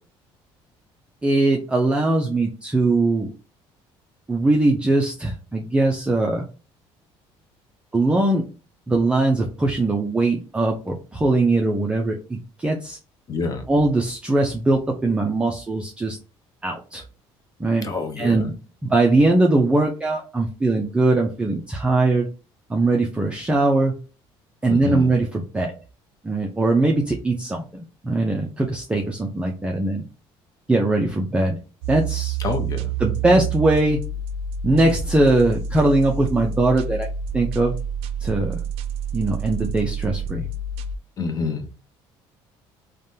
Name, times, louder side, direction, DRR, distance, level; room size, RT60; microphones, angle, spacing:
voice 1, 1.2-3.3 4.3-6.4 7.9-8.4 8.9-13.0 13.7-16.2 16.6-17.0 17.6-17.9 18.2-18.5 18.8-22.3 22.7-23.9 24.6-25.7 26.2-30.0 30.7-31.6 31.9-32.4 33.0-34.0 34.6-37.1 37.3-37.7 38.2-38.6 39.1-40.5, right 2 dB, 10° right, 0 dB, 0.4 m, -21 dB
voice 2, 13.3-13.6 17.8-18.4 24.7-25.1 32.4-32.9 41.2-41.8, left 4 dB, 35° left, 6 dB, 0.6 m, -27 dB
sound 1, 31.8-41.0, right 5 dB, 75° right, 0.4 m, -28 dB
3.3 x 2.2 x 2.6 m, 0.34 s
cardioid pair, 130°, 10 cm